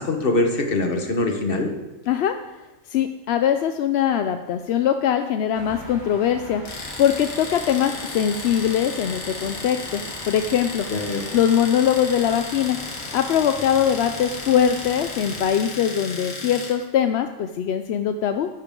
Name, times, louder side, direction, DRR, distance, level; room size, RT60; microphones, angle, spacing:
voice 1, 0.0-1.7 10.9-11.2, left 2 dB, 45° left, 4 dB, 1.4 m, -23 dB
voice 2, 2.9-6.6 7.0-10.9 11.3-12.8 13.1-18.5, left 9 dB, 65° left, 7 dB, 0.7 m, -22 dB
sound 1, 5.5-15.5, right 1 dB, 35° right, 1.9 m, -41 dB
Domestic sounds home sounds, 6.6-16.8, left 3 dB, 85° left, 1.9 m, -35 dB
13.5 x 9.7 x 3.8 m, 1.1 s
omnidirectional pair, 1.4 m